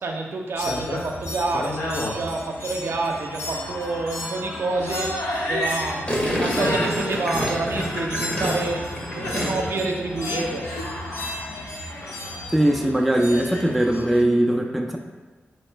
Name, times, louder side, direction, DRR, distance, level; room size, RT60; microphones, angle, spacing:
voice 1, 0.0-8.8 9.1-10.6, right 3 dB, 70° right, 1 dB, 0.5 m, -28 dB
sound 1, 0.6-14.2, left 1 dB, 80° left, 0.7 m, -31 dB
Gurgling, 6.1-9.9 10.1-10.5, equal, 30° left, 1.0 m, -27 dB
voice 2, 12.5-15.0, right 1 dB, ahead, 2 dB, 0.4 m, -20 dB
3.0 x 2.8 x 4.4 m, 1.3 s
cardioid pair, 80°, 4 cm